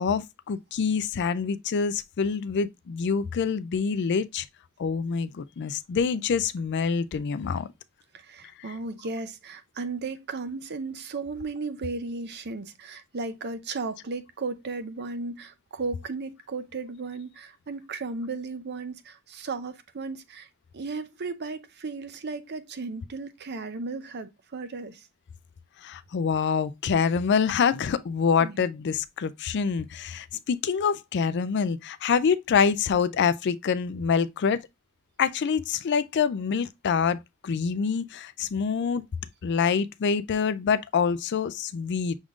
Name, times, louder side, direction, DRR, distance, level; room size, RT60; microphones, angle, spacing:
voice 1, 0.0-4.5 4.8-7.7 25.8-34.6 35.2-37.2 37.4-39.0 39.4-42.2, left 6 dB, 50° left, 0.4 m, -26 dB
voice 2, 8.1-25.1 28.4-28.7, right 3 dB, 50° right, 0.6 m, -35 dB
6.2 x 3.6 x 2.4 m
head